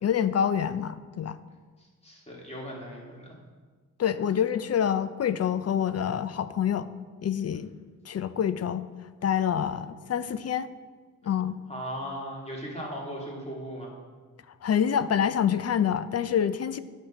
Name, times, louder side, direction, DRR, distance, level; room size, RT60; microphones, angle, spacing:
voice 1, 0.0-1.4 4.0-6.9 7.2-7.7 8.1-8.9 9.2-10.7 11.2-11.6 14.6-16.8, left 8 dB, 50° left, 14 dB, 0.5 m, -26 dB
voice 2, 1.8-3.3 9.7-9.8 11.7-13.9, equal, 20° left, -2 dB, 2.3 m, -38 dB
9.8 x 5.6 x 4.3 m, 1.4 s
cardioid pair, 80°, 33 cm